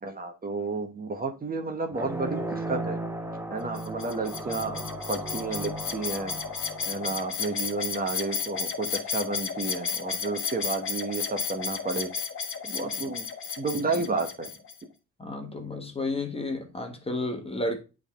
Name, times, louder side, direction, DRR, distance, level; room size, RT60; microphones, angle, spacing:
voice 1, 0.0-3.0 3.5-6.3 6.9-12.1 12.6-13.3 13.6-14.5, right 3 dB, 30° right, 1.0 m, -31 dB
sound 1, 1.9-8.1, right 1 dB, 10° right, 0.9 m, -36 dB
sound 2, 3.7-14.8, left 6 dB, 45° left, 1.3 m, -33 dB
voice 2, 15.2-17.8, left 2 dB, 20° left, 1.4 m, -32 dB
8.2 x 3.7 x 3.6 m
cardioid pair, 90°, 30 cm